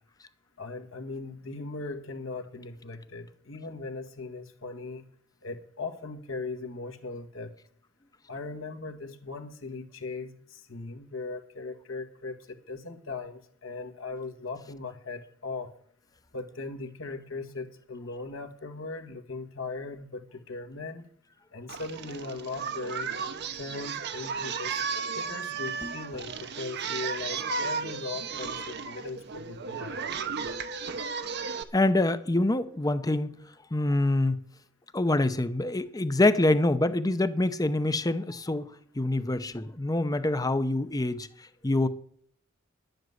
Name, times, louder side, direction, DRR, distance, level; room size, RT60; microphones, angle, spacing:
voice 1, 0.6-5.0 5.4-7.5 8.3-15.7 16.3-21.1 21.5-23.1 23.5-24.8 25.1-30.0, left 3 dB, 75° left, 1.6 m, -39 dB
Singing, 21.7-31.6, right 5 dB, 55° right, 0.9 m, -34 dB
voice 2, 31.7-33.3 33.7-34.4 34.9-41.9, left 2 dB, 20° left, 0.7 m, -26 dB
11.0 x 7.9 x 7.8 m
head